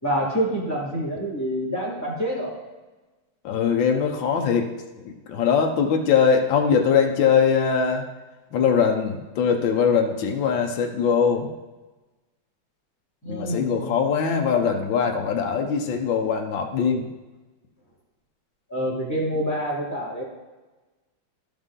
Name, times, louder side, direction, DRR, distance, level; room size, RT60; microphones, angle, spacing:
voice 1, 0.0-2.5 13.2-13.8 18.7-20.2, equal, 10° left, -8 dB, 2.7 m, -27 dB
voice 2, 3.4-4.7 5.3-8.0 8.5-11.5 13.3-17.1, left 6 dB, 80° left, 3 dB, 1.6 m, -21 dB
12.5 x 5.4 x 3.7 m, 1.2 s
omnidirectional pair, 2.1 m